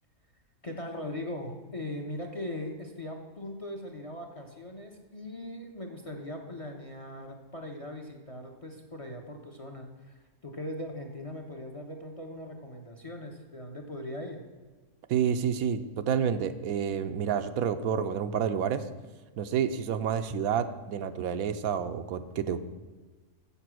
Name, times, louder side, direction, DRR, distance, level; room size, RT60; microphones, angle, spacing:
voice 1, 0.6-14.5, left 1 dB, 30° left, 3 dB, 0.6 m, -40 dB
voice 2, 15.1-18.8 19.4-22.6, right 8 dB, 85° right, 10 dB, 1.1 m, -29 dB
7.5 x 6.8 x 6.1 m, 1.4 s
omnidirectional pair, 1.5 m